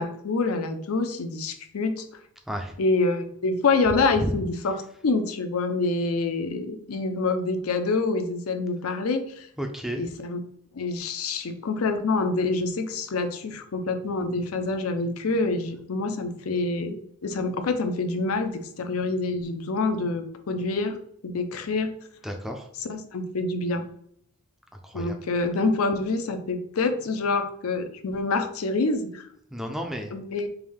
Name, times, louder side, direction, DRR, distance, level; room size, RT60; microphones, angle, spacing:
voice 1, 0.0-2.0 2.8-4.8 5.0-9.5 10.0-10.4 10.7-17.0 17.2-21.0 21.2-21.9 22.8-23.8 24.9-29.3 30.1-30.5, left 3 dB, 90° left, 7 dB, 0.5 m, -26 dB
voice 2, 9.6-10.0 22.2-22.7 24.8-25.2 29.5-30.1, equal, ahead, 3 dB, 0.4 m, -32 dB
3.4 x 2.6 x 3.5 m, 0.68 s
head